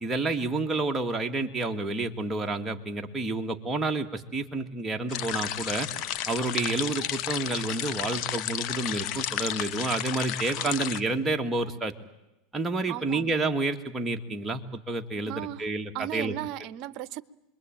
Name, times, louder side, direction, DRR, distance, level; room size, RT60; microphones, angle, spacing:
voice 1, 0.0-5.9 6.3-11.9 12.5-16.3, right 3 dB, 15° right, 2.2 m, -29 dB
sound 1, 5.1-11.0, left 11 dB, 55° left, 1.2 m, -32 dB
voice 2, 12.9-13.4 15.3-15.7 15.9-17.2, right 13 dB, 55° right, 0.9 m, -36 dB
27.0 x 22.0 x 9.1 m
supercardioid pair, 115°, 0 cm